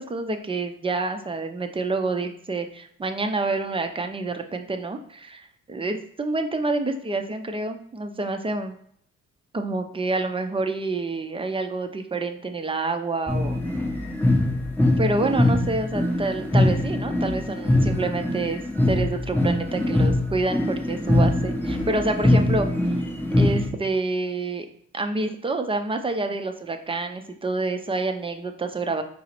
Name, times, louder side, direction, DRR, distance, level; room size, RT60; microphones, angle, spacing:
voice 1, 0.0-8.8 9.5-13.6 15.0-22.7 23.4-24.7 24.9-29.0, right 3 dB, 20° right, 6 dB, 0.4 m, -28 dB
sound 1, 13.3-23.7, left 1 dB, 5° left, 0.8 m, -22 dB
4.8 x 2.0 x 4.3 m, 0.66 s
cardioid pair, 90°, 30 cm